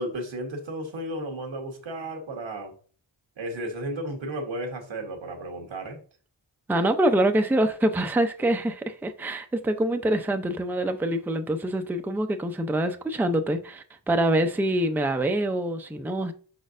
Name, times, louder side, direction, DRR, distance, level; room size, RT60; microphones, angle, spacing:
voice 1, 0.0-2.7 3.4-6.0, right 1 dB, 85° right, 1.2 m, -33 dB
voice 2, 6.7-16.3, right 1 dB, 5° right, 0.4 m, -25 dB
5.1 x 4.1 x 2.5 m
wide cardioid pair, 75°, 45 cm